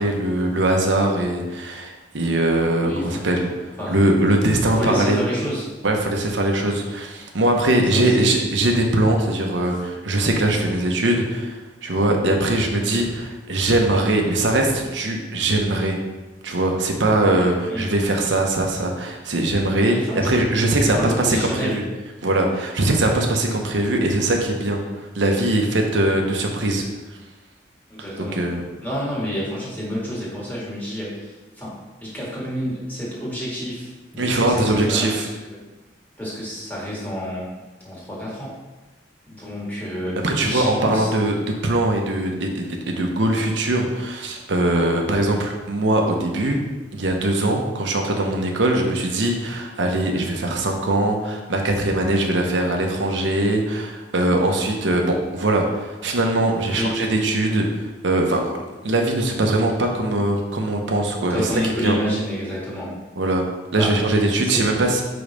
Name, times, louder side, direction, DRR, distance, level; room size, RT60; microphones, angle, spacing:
voice 1, 0.0-3.5 3.9-5.2 5.8-16.0 16.4-21.8 22.2-26.8 28.2-28.7 34.2-35.3 40.2-46.6 46.9-58.6 58.8-61.4 61.8-62.0 63.2-63.4 63.7-65.0, right 1 dB, 85° right, 2 dB, 0.9 m, -21 dB
voice 2, 2.8-3.2 3.8-4.0 4.6-5.7 6.3-6.4 7.8-8.5 17.2-17.9 19.8-20.4 20.7-21.9 24.8-24.9 27.9-28.4 28.8-31.7 32.0-35.3 36.2-37.5 37.8-38.6 39.3-41.1 56.7-57.0 61.3-62.9 63.8-63.9 64.4-64.6, equal, 10° left, -6 dB, 1.8 m, -29 dB
5.2 x 3.9 x 5.2 m, 1.2 s
head